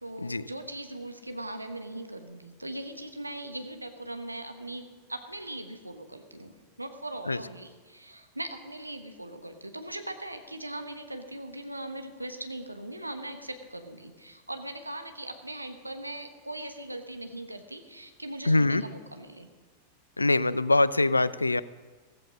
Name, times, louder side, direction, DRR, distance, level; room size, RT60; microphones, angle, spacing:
voice 1, 0.0-19.5, right 1 dB, 85° right, 7 dB, 1.2 m, -40 dB
voice 2, 18.5-18.8 20.2-21.6, left 2 dB, 80° left, 19 dB, 0.4 m, -23 dB
15.0 x 15.0 x 5.1 m, 1.4 s
figure-of-eight pair, 90°, 0 cm